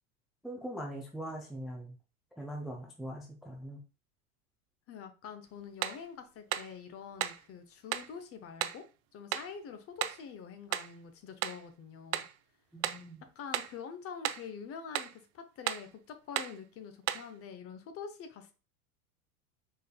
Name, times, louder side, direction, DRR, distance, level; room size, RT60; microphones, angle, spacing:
voice 1, 0.4-1.9 2.4-3.8 12.7-13.2, right 1 dB, ahead, 0 dB, 0.4 m, -41 dB
voice 2, 4.9-8.8 9.1-12.2 13.4-18.5, left 6 dB, 35° left, 9 dB, 0.7 m, -46 dB
sound 1, 5.8-6.1 6.5-6.7 7.2-7.5 7.9-8.1 8.6-8.8 9.3-9.5 10.0-10.3 10.7-11.0 11.4-11.7 12.1-12.4 12.8-13.1 13.5-13.8 14.2-14.5 15.0-15.2 15.7-15.9 16.4-16.6 17.1-17.3, right 13 dB, 55° right, 0.5 m, -35 dB
4.5 x 3.3 x 2.2 m, 0.34 s
hypercardioid pair, 100°, 44 cm